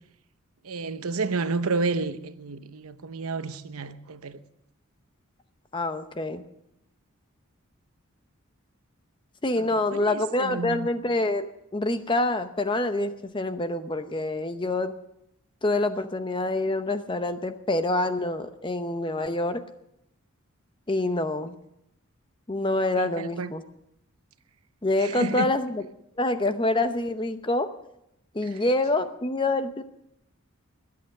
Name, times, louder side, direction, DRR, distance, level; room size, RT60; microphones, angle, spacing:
voice 1, 0.6-4.4 9.6-10.9 23.0-23.5 25.0-25.5 28.4-28.5, right 3 dB, 80° right, 0.8 m, -31 dB
voice 2, 5.7-6.4 9.4-11.5 11.7-14.9 15.6-19.6 20.9-21.6 22.5-23.6 24.8-25.9 26.2-27.7 28.3-29.8, left 2 dB, 20° left, 0.7 m, -26 dB
21.0 x 8.6 x 6.5 m
head